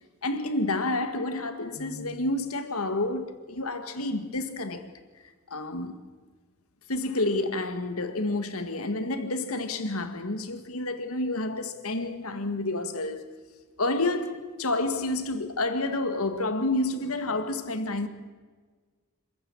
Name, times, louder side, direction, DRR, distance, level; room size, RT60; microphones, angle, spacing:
voice 1, 0.2-4.9 5.5-6.0 6.9-13.2 13.8-18.1, left 2 dB, 85° left, 2.0 m, -29 dB
27.0 x 14.5 x 8.8 m
head